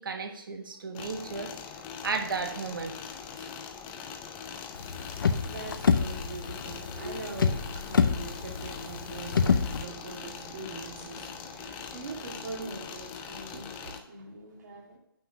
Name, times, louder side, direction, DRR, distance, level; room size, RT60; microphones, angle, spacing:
voice 1, 0.0-1.5 2.0-3.0 3.3-3.5 7.0-7.1, right 4 dB, 65° right, 5 dB, 1.3 m, -34 dB
sound 1, 0.9-14.0, left 6 dB, 15° left, 0.4 m, -42 dB
sound 2, 4.8-9.8, left 6 dB, 65° left, 0.7 m, -27 dB
voice 2, 4.8-15.0, right 3 dB, 45° right, 1 dB, 1.9 m, -42 dB
6.3 x 5.1 x 5.8 m, 0.81 s
hypercardioid pair, 155°, 12 cm